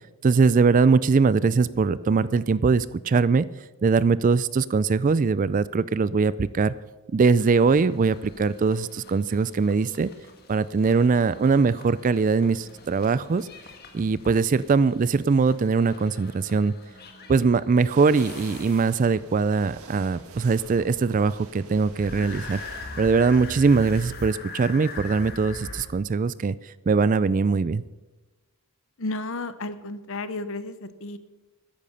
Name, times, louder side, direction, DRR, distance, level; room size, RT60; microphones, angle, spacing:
voice 1, 0.2-3.5 3.8-6.7 7.1-10.1 10.5-13.5 13.9-16.7 17.3-22.6 23.0-27.8, right 4 dB, 35° right, 18 dB, 0.3 m, -21 dB
sound 1, 7.3-19.2 21.9-25.8, left 3 dB, 45° left, 1.6 m, -42 dB
sound 2, 17.9-23.5, right 3 dB, 75° right, 1.6 m, -46 dB
voice 2, 29.0-31.2, left 2 dB, 60° left, 13 dB, 0.9 m, -32 dB
13.5 x 10.5 x 5.5 m, 1.2 s
head